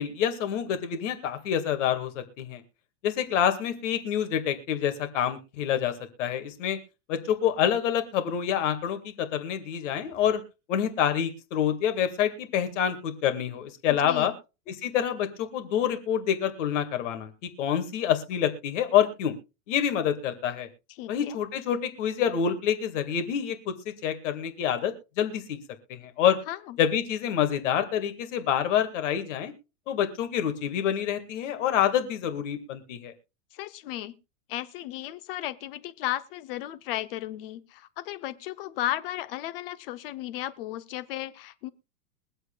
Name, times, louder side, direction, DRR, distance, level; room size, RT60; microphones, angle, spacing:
voice 1, 0.0-2.6 3.0-5.9 6.2-6.8 7.1-10.4 10.7-14.3 14.7-17.3 17.6-19.3 19.7-20.7 21.1-25.6 25.9-26.4 26.8-29.5 29.9-33.1, left 9 dB, 55° left, 2.0 m, -27 dB
voice 2, 13.9-14.3 21.0-21.4 26.5-26.8 33.5-34.1 34.5-41.7, left 14 dB, 40° left, 0.7 m, -35 dB
22.5 x 7.9 x 2.3 m
supercardioid pair, 155°, 43 cm